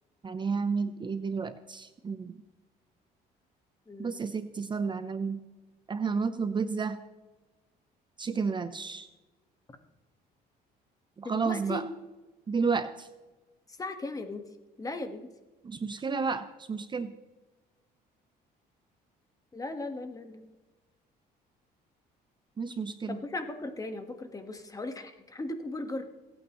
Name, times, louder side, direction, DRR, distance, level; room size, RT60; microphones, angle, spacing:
voice 1, 0.2-2.4 4.0-5.4 5.9-7.0 8.2-9.1 11.2-11.8 12.5-13.1 15.6-17.1 22.6-23.2, right 5 dB, 25° right, 10 dB, 0.7 m, -31 dB
voice 2, 3.9-4.2 11.3-11.8 13.8-14.4 14.8-15.3 19.5-20.5 23.1-26.1, left 2 dB, 20° left, 7 dB, 1.5 m, -37 dB
26.5 x 9.0 x 3.1 m, 1.1 s
cardioid pair, 110°, 17 cm